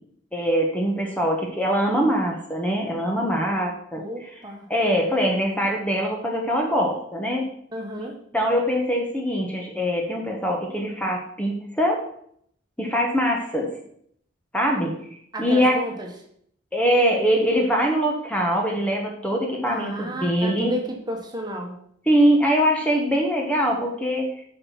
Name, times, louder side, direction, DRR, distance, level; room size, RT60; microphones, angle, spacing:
voice 1, 0.3-4.0 4.7-7.5 8.0-12.0 12.8-13.7 14.5-14.9 15.4-15.8 16.7-20.7 22.1-24.3, equal, 10° left, 0 dB, 1.4 m, -23 dB
voice 2, 4.0-4.7 7.7-8.2 15.3-16.1 19.6-21.8, equal, 25° right, 1 dB, 1.6 m, -32 dB
7.9 x 5.9 x 5.7 m, 0.66 s
head